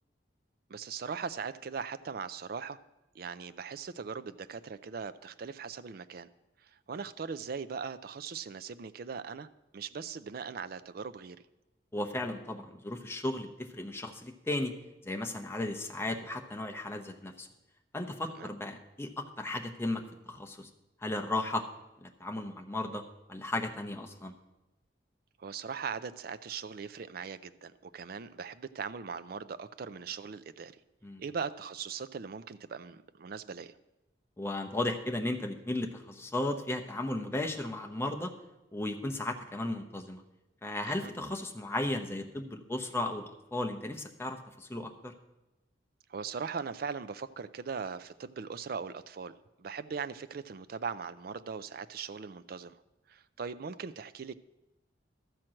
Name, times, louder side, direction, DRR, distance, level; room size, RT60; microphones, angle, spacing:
voice 1, 0.7-2.8 3.1-6.3 6.6-9.5 9.7-11.4 18.4-18.5 25.4-30.7 31.2-33.7 40.8-41.1 46.1-49.3 49.6-52.7 53.1-54.3, right 6 dB, 55° right, 12 dB, 0.4 m, -40 dB
voice 2, 11.9-14.7 15.0-17.5 17.9-20.7 21.0-21.6 22.0-23.0 23.3-24.3 31.0-31.2 34.4-38.3 38.7-40.2 40.6-45.1, left 2 dB, 15° left, 3 dB, 0.8 m, -35 dB
13.0 x 4.5 x 7.5 m, 0.99 s
head